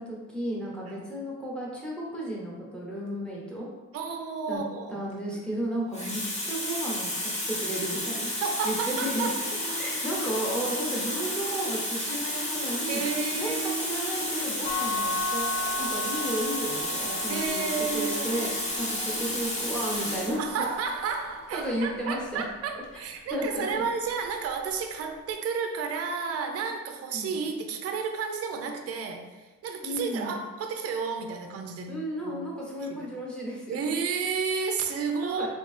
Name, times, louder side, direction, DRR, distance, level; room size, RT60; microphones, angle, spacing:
voice 1, 0.0-3.7 4.5-4.6 4.9-8.3 8.6-9.3 9.8-13.0 13.4-15.5 15.8-20.7 21.5-22.4 23.3-23.8 27.1-27.3 29.8-30.3 31.9-33.8 35.2-35.5, equal, 5° left, -4 dB, 1.0 m, -33 dB
voice 2, 3.9-5.0 5.9-6.2 8.4-9.4 12.9-14.3 17.3-18.4 20.4-31.9 32.2-32.4 32.8-33.1 33.7-35.5, right 5 dB, 55° right, 5 dB, 0.5 m, -32 dB
Water tap faucet, 5.1-5.4 5.9-20.4 21.3-21.5, left 1 dB, 20° left, 1.0 m, -31 dB
sound 1, 14.6-20.5, left 2 dB, 90° left, 1.2 m, -35 dB
3.2 x 2.8 x 3.2 m, 1.2 s
cardioid pair, 90°, 30 cm